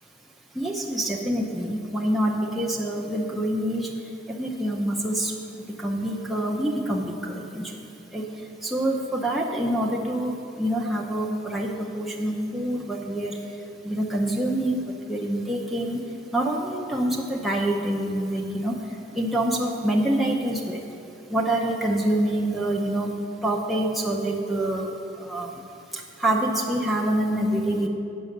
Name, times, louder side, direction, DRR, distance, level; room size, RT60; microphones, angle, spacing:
voice 1, 0.6-3.9 4.3-5.3 5.8-7.7 8.1-8.2 8.6-13.3 13.8-16.1 16.3-18.8 19.1-20.8 21.3-23.1 23.4-24.9 25.2-25.5 26.2-27.9, right 1 dB, ahead, -3 dB, 0.7 m, -26 dB
8.9 x 6.2 x 6.6 m, 2.8 s
head